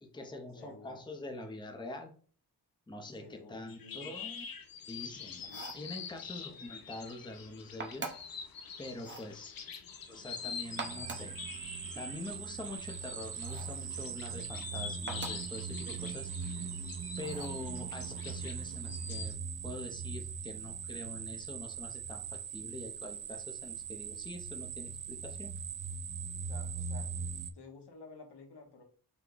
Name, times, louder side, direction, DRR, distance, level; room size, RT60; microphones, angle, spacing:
voice 1, 0.0-2.1 2.9-4.5 4.9-5.4 5.7-8.1 8.8-9.6 10.1-11.4 11.9-16.6 17.2-19.4 19.6-25.6, left 2 dB, 10° left, 4 dB, 0.7 m, -45 dB
voice 2, 0.6-1.0 3.2-4.1 5.4-5.7 6.3-6.6 26.5-27.2 27.5-28.8, left 3 dB, 80° left, 4 dB, 1.1 m, -53 dB
sound 1, 3.6-19.3, left 6 dB, 60° left, 0.7 m, -46 dB
sound 2, 5.4-5.9 7.8-8.4 9.0-9.3 10.6-11.4 13.4-13.8 15.1-15.5 17.2-17.6, right 4 dB, 30° right, 0.8 m, -43 dB
sound 3, 10.1-27.5, right 6 dB, 55° right, 0.5 m, -41 dB
5.9 x 2.2 x 3.8 m, 0.43 s
wide cardioid pair, 120°, 40 cm